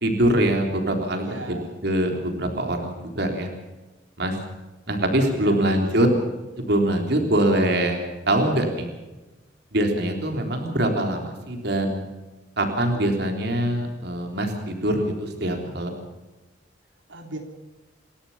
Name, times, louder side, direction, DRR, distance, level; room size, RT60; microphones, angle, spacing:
voice 1, 0.0-1.2 1.8-3.5 4.2-4.4 4.9-6.1 6.6-8.9 9.7-12.1 12.6-15.9, right 1 dB, 60° right, 3 dB, 3.6 m, -23 dB
voice 2, 1.2-1.8 5.3-6.2 17.1-17.4, right 2 dB, 85° right, 2 dB, 3.6 m, -38 dB
28.0 x 13.0 x 7.2 m, 1.2 s
head